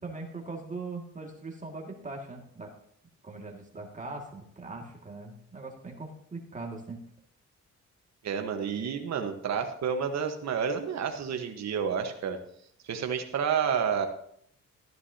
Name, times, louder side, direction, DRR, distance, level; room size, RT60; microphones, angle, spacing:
voice 1, 0.0-2.7 3.2-7.0, right 3 dB, 25° right, 0 dB, 2.2 m, -40 dB
voice 2, 8.2-12.4 12.8-14.1, right 7 dB, 60° right, 6 dB, 1.4 m, -30 dB
13.5 x 11.0 x 2.9 m, 0.67 s
cardioid pair, 90°, 30 cm